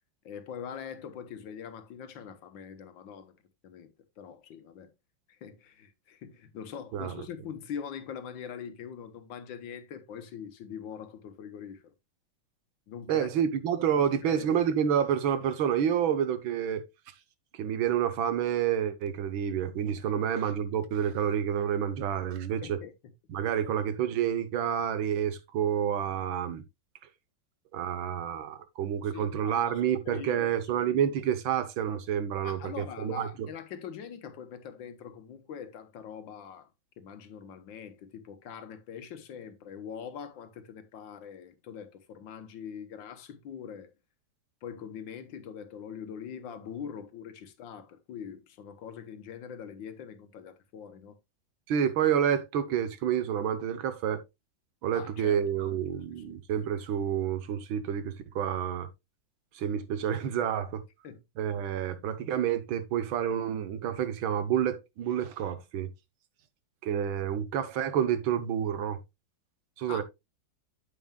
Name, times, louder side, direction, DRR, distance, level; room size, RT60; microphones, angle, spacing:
voice 1, 0.2-3.4 3.6-3.9 4.2-4.9 5.3-11.9 12.9-13.3 14.2-14.5 20.0-20.2 22.6-23.1 29.0-30.6 31.0-31.1 32.4-36.7 37.0-43.9 44.6-51.2 54.9-55.8 56.1-56.4 61.0-61.2 69.9-70.0, left 7 dB, 70° left, 1.6 m, -43 dB
voice 2, 13.1-16.8 17.5-22.8 23.3-26.6 27.7-33.5 51.7-54.2 54.8-58.9 59.5-60.8 61.4-65.9 66.8-69.0 69.8-70.0, right 9 dB, 75° right, 1.7 m, -29 dB
9.0 x 7.7 x 2.3 m
omnidirectional pair, 2.2 m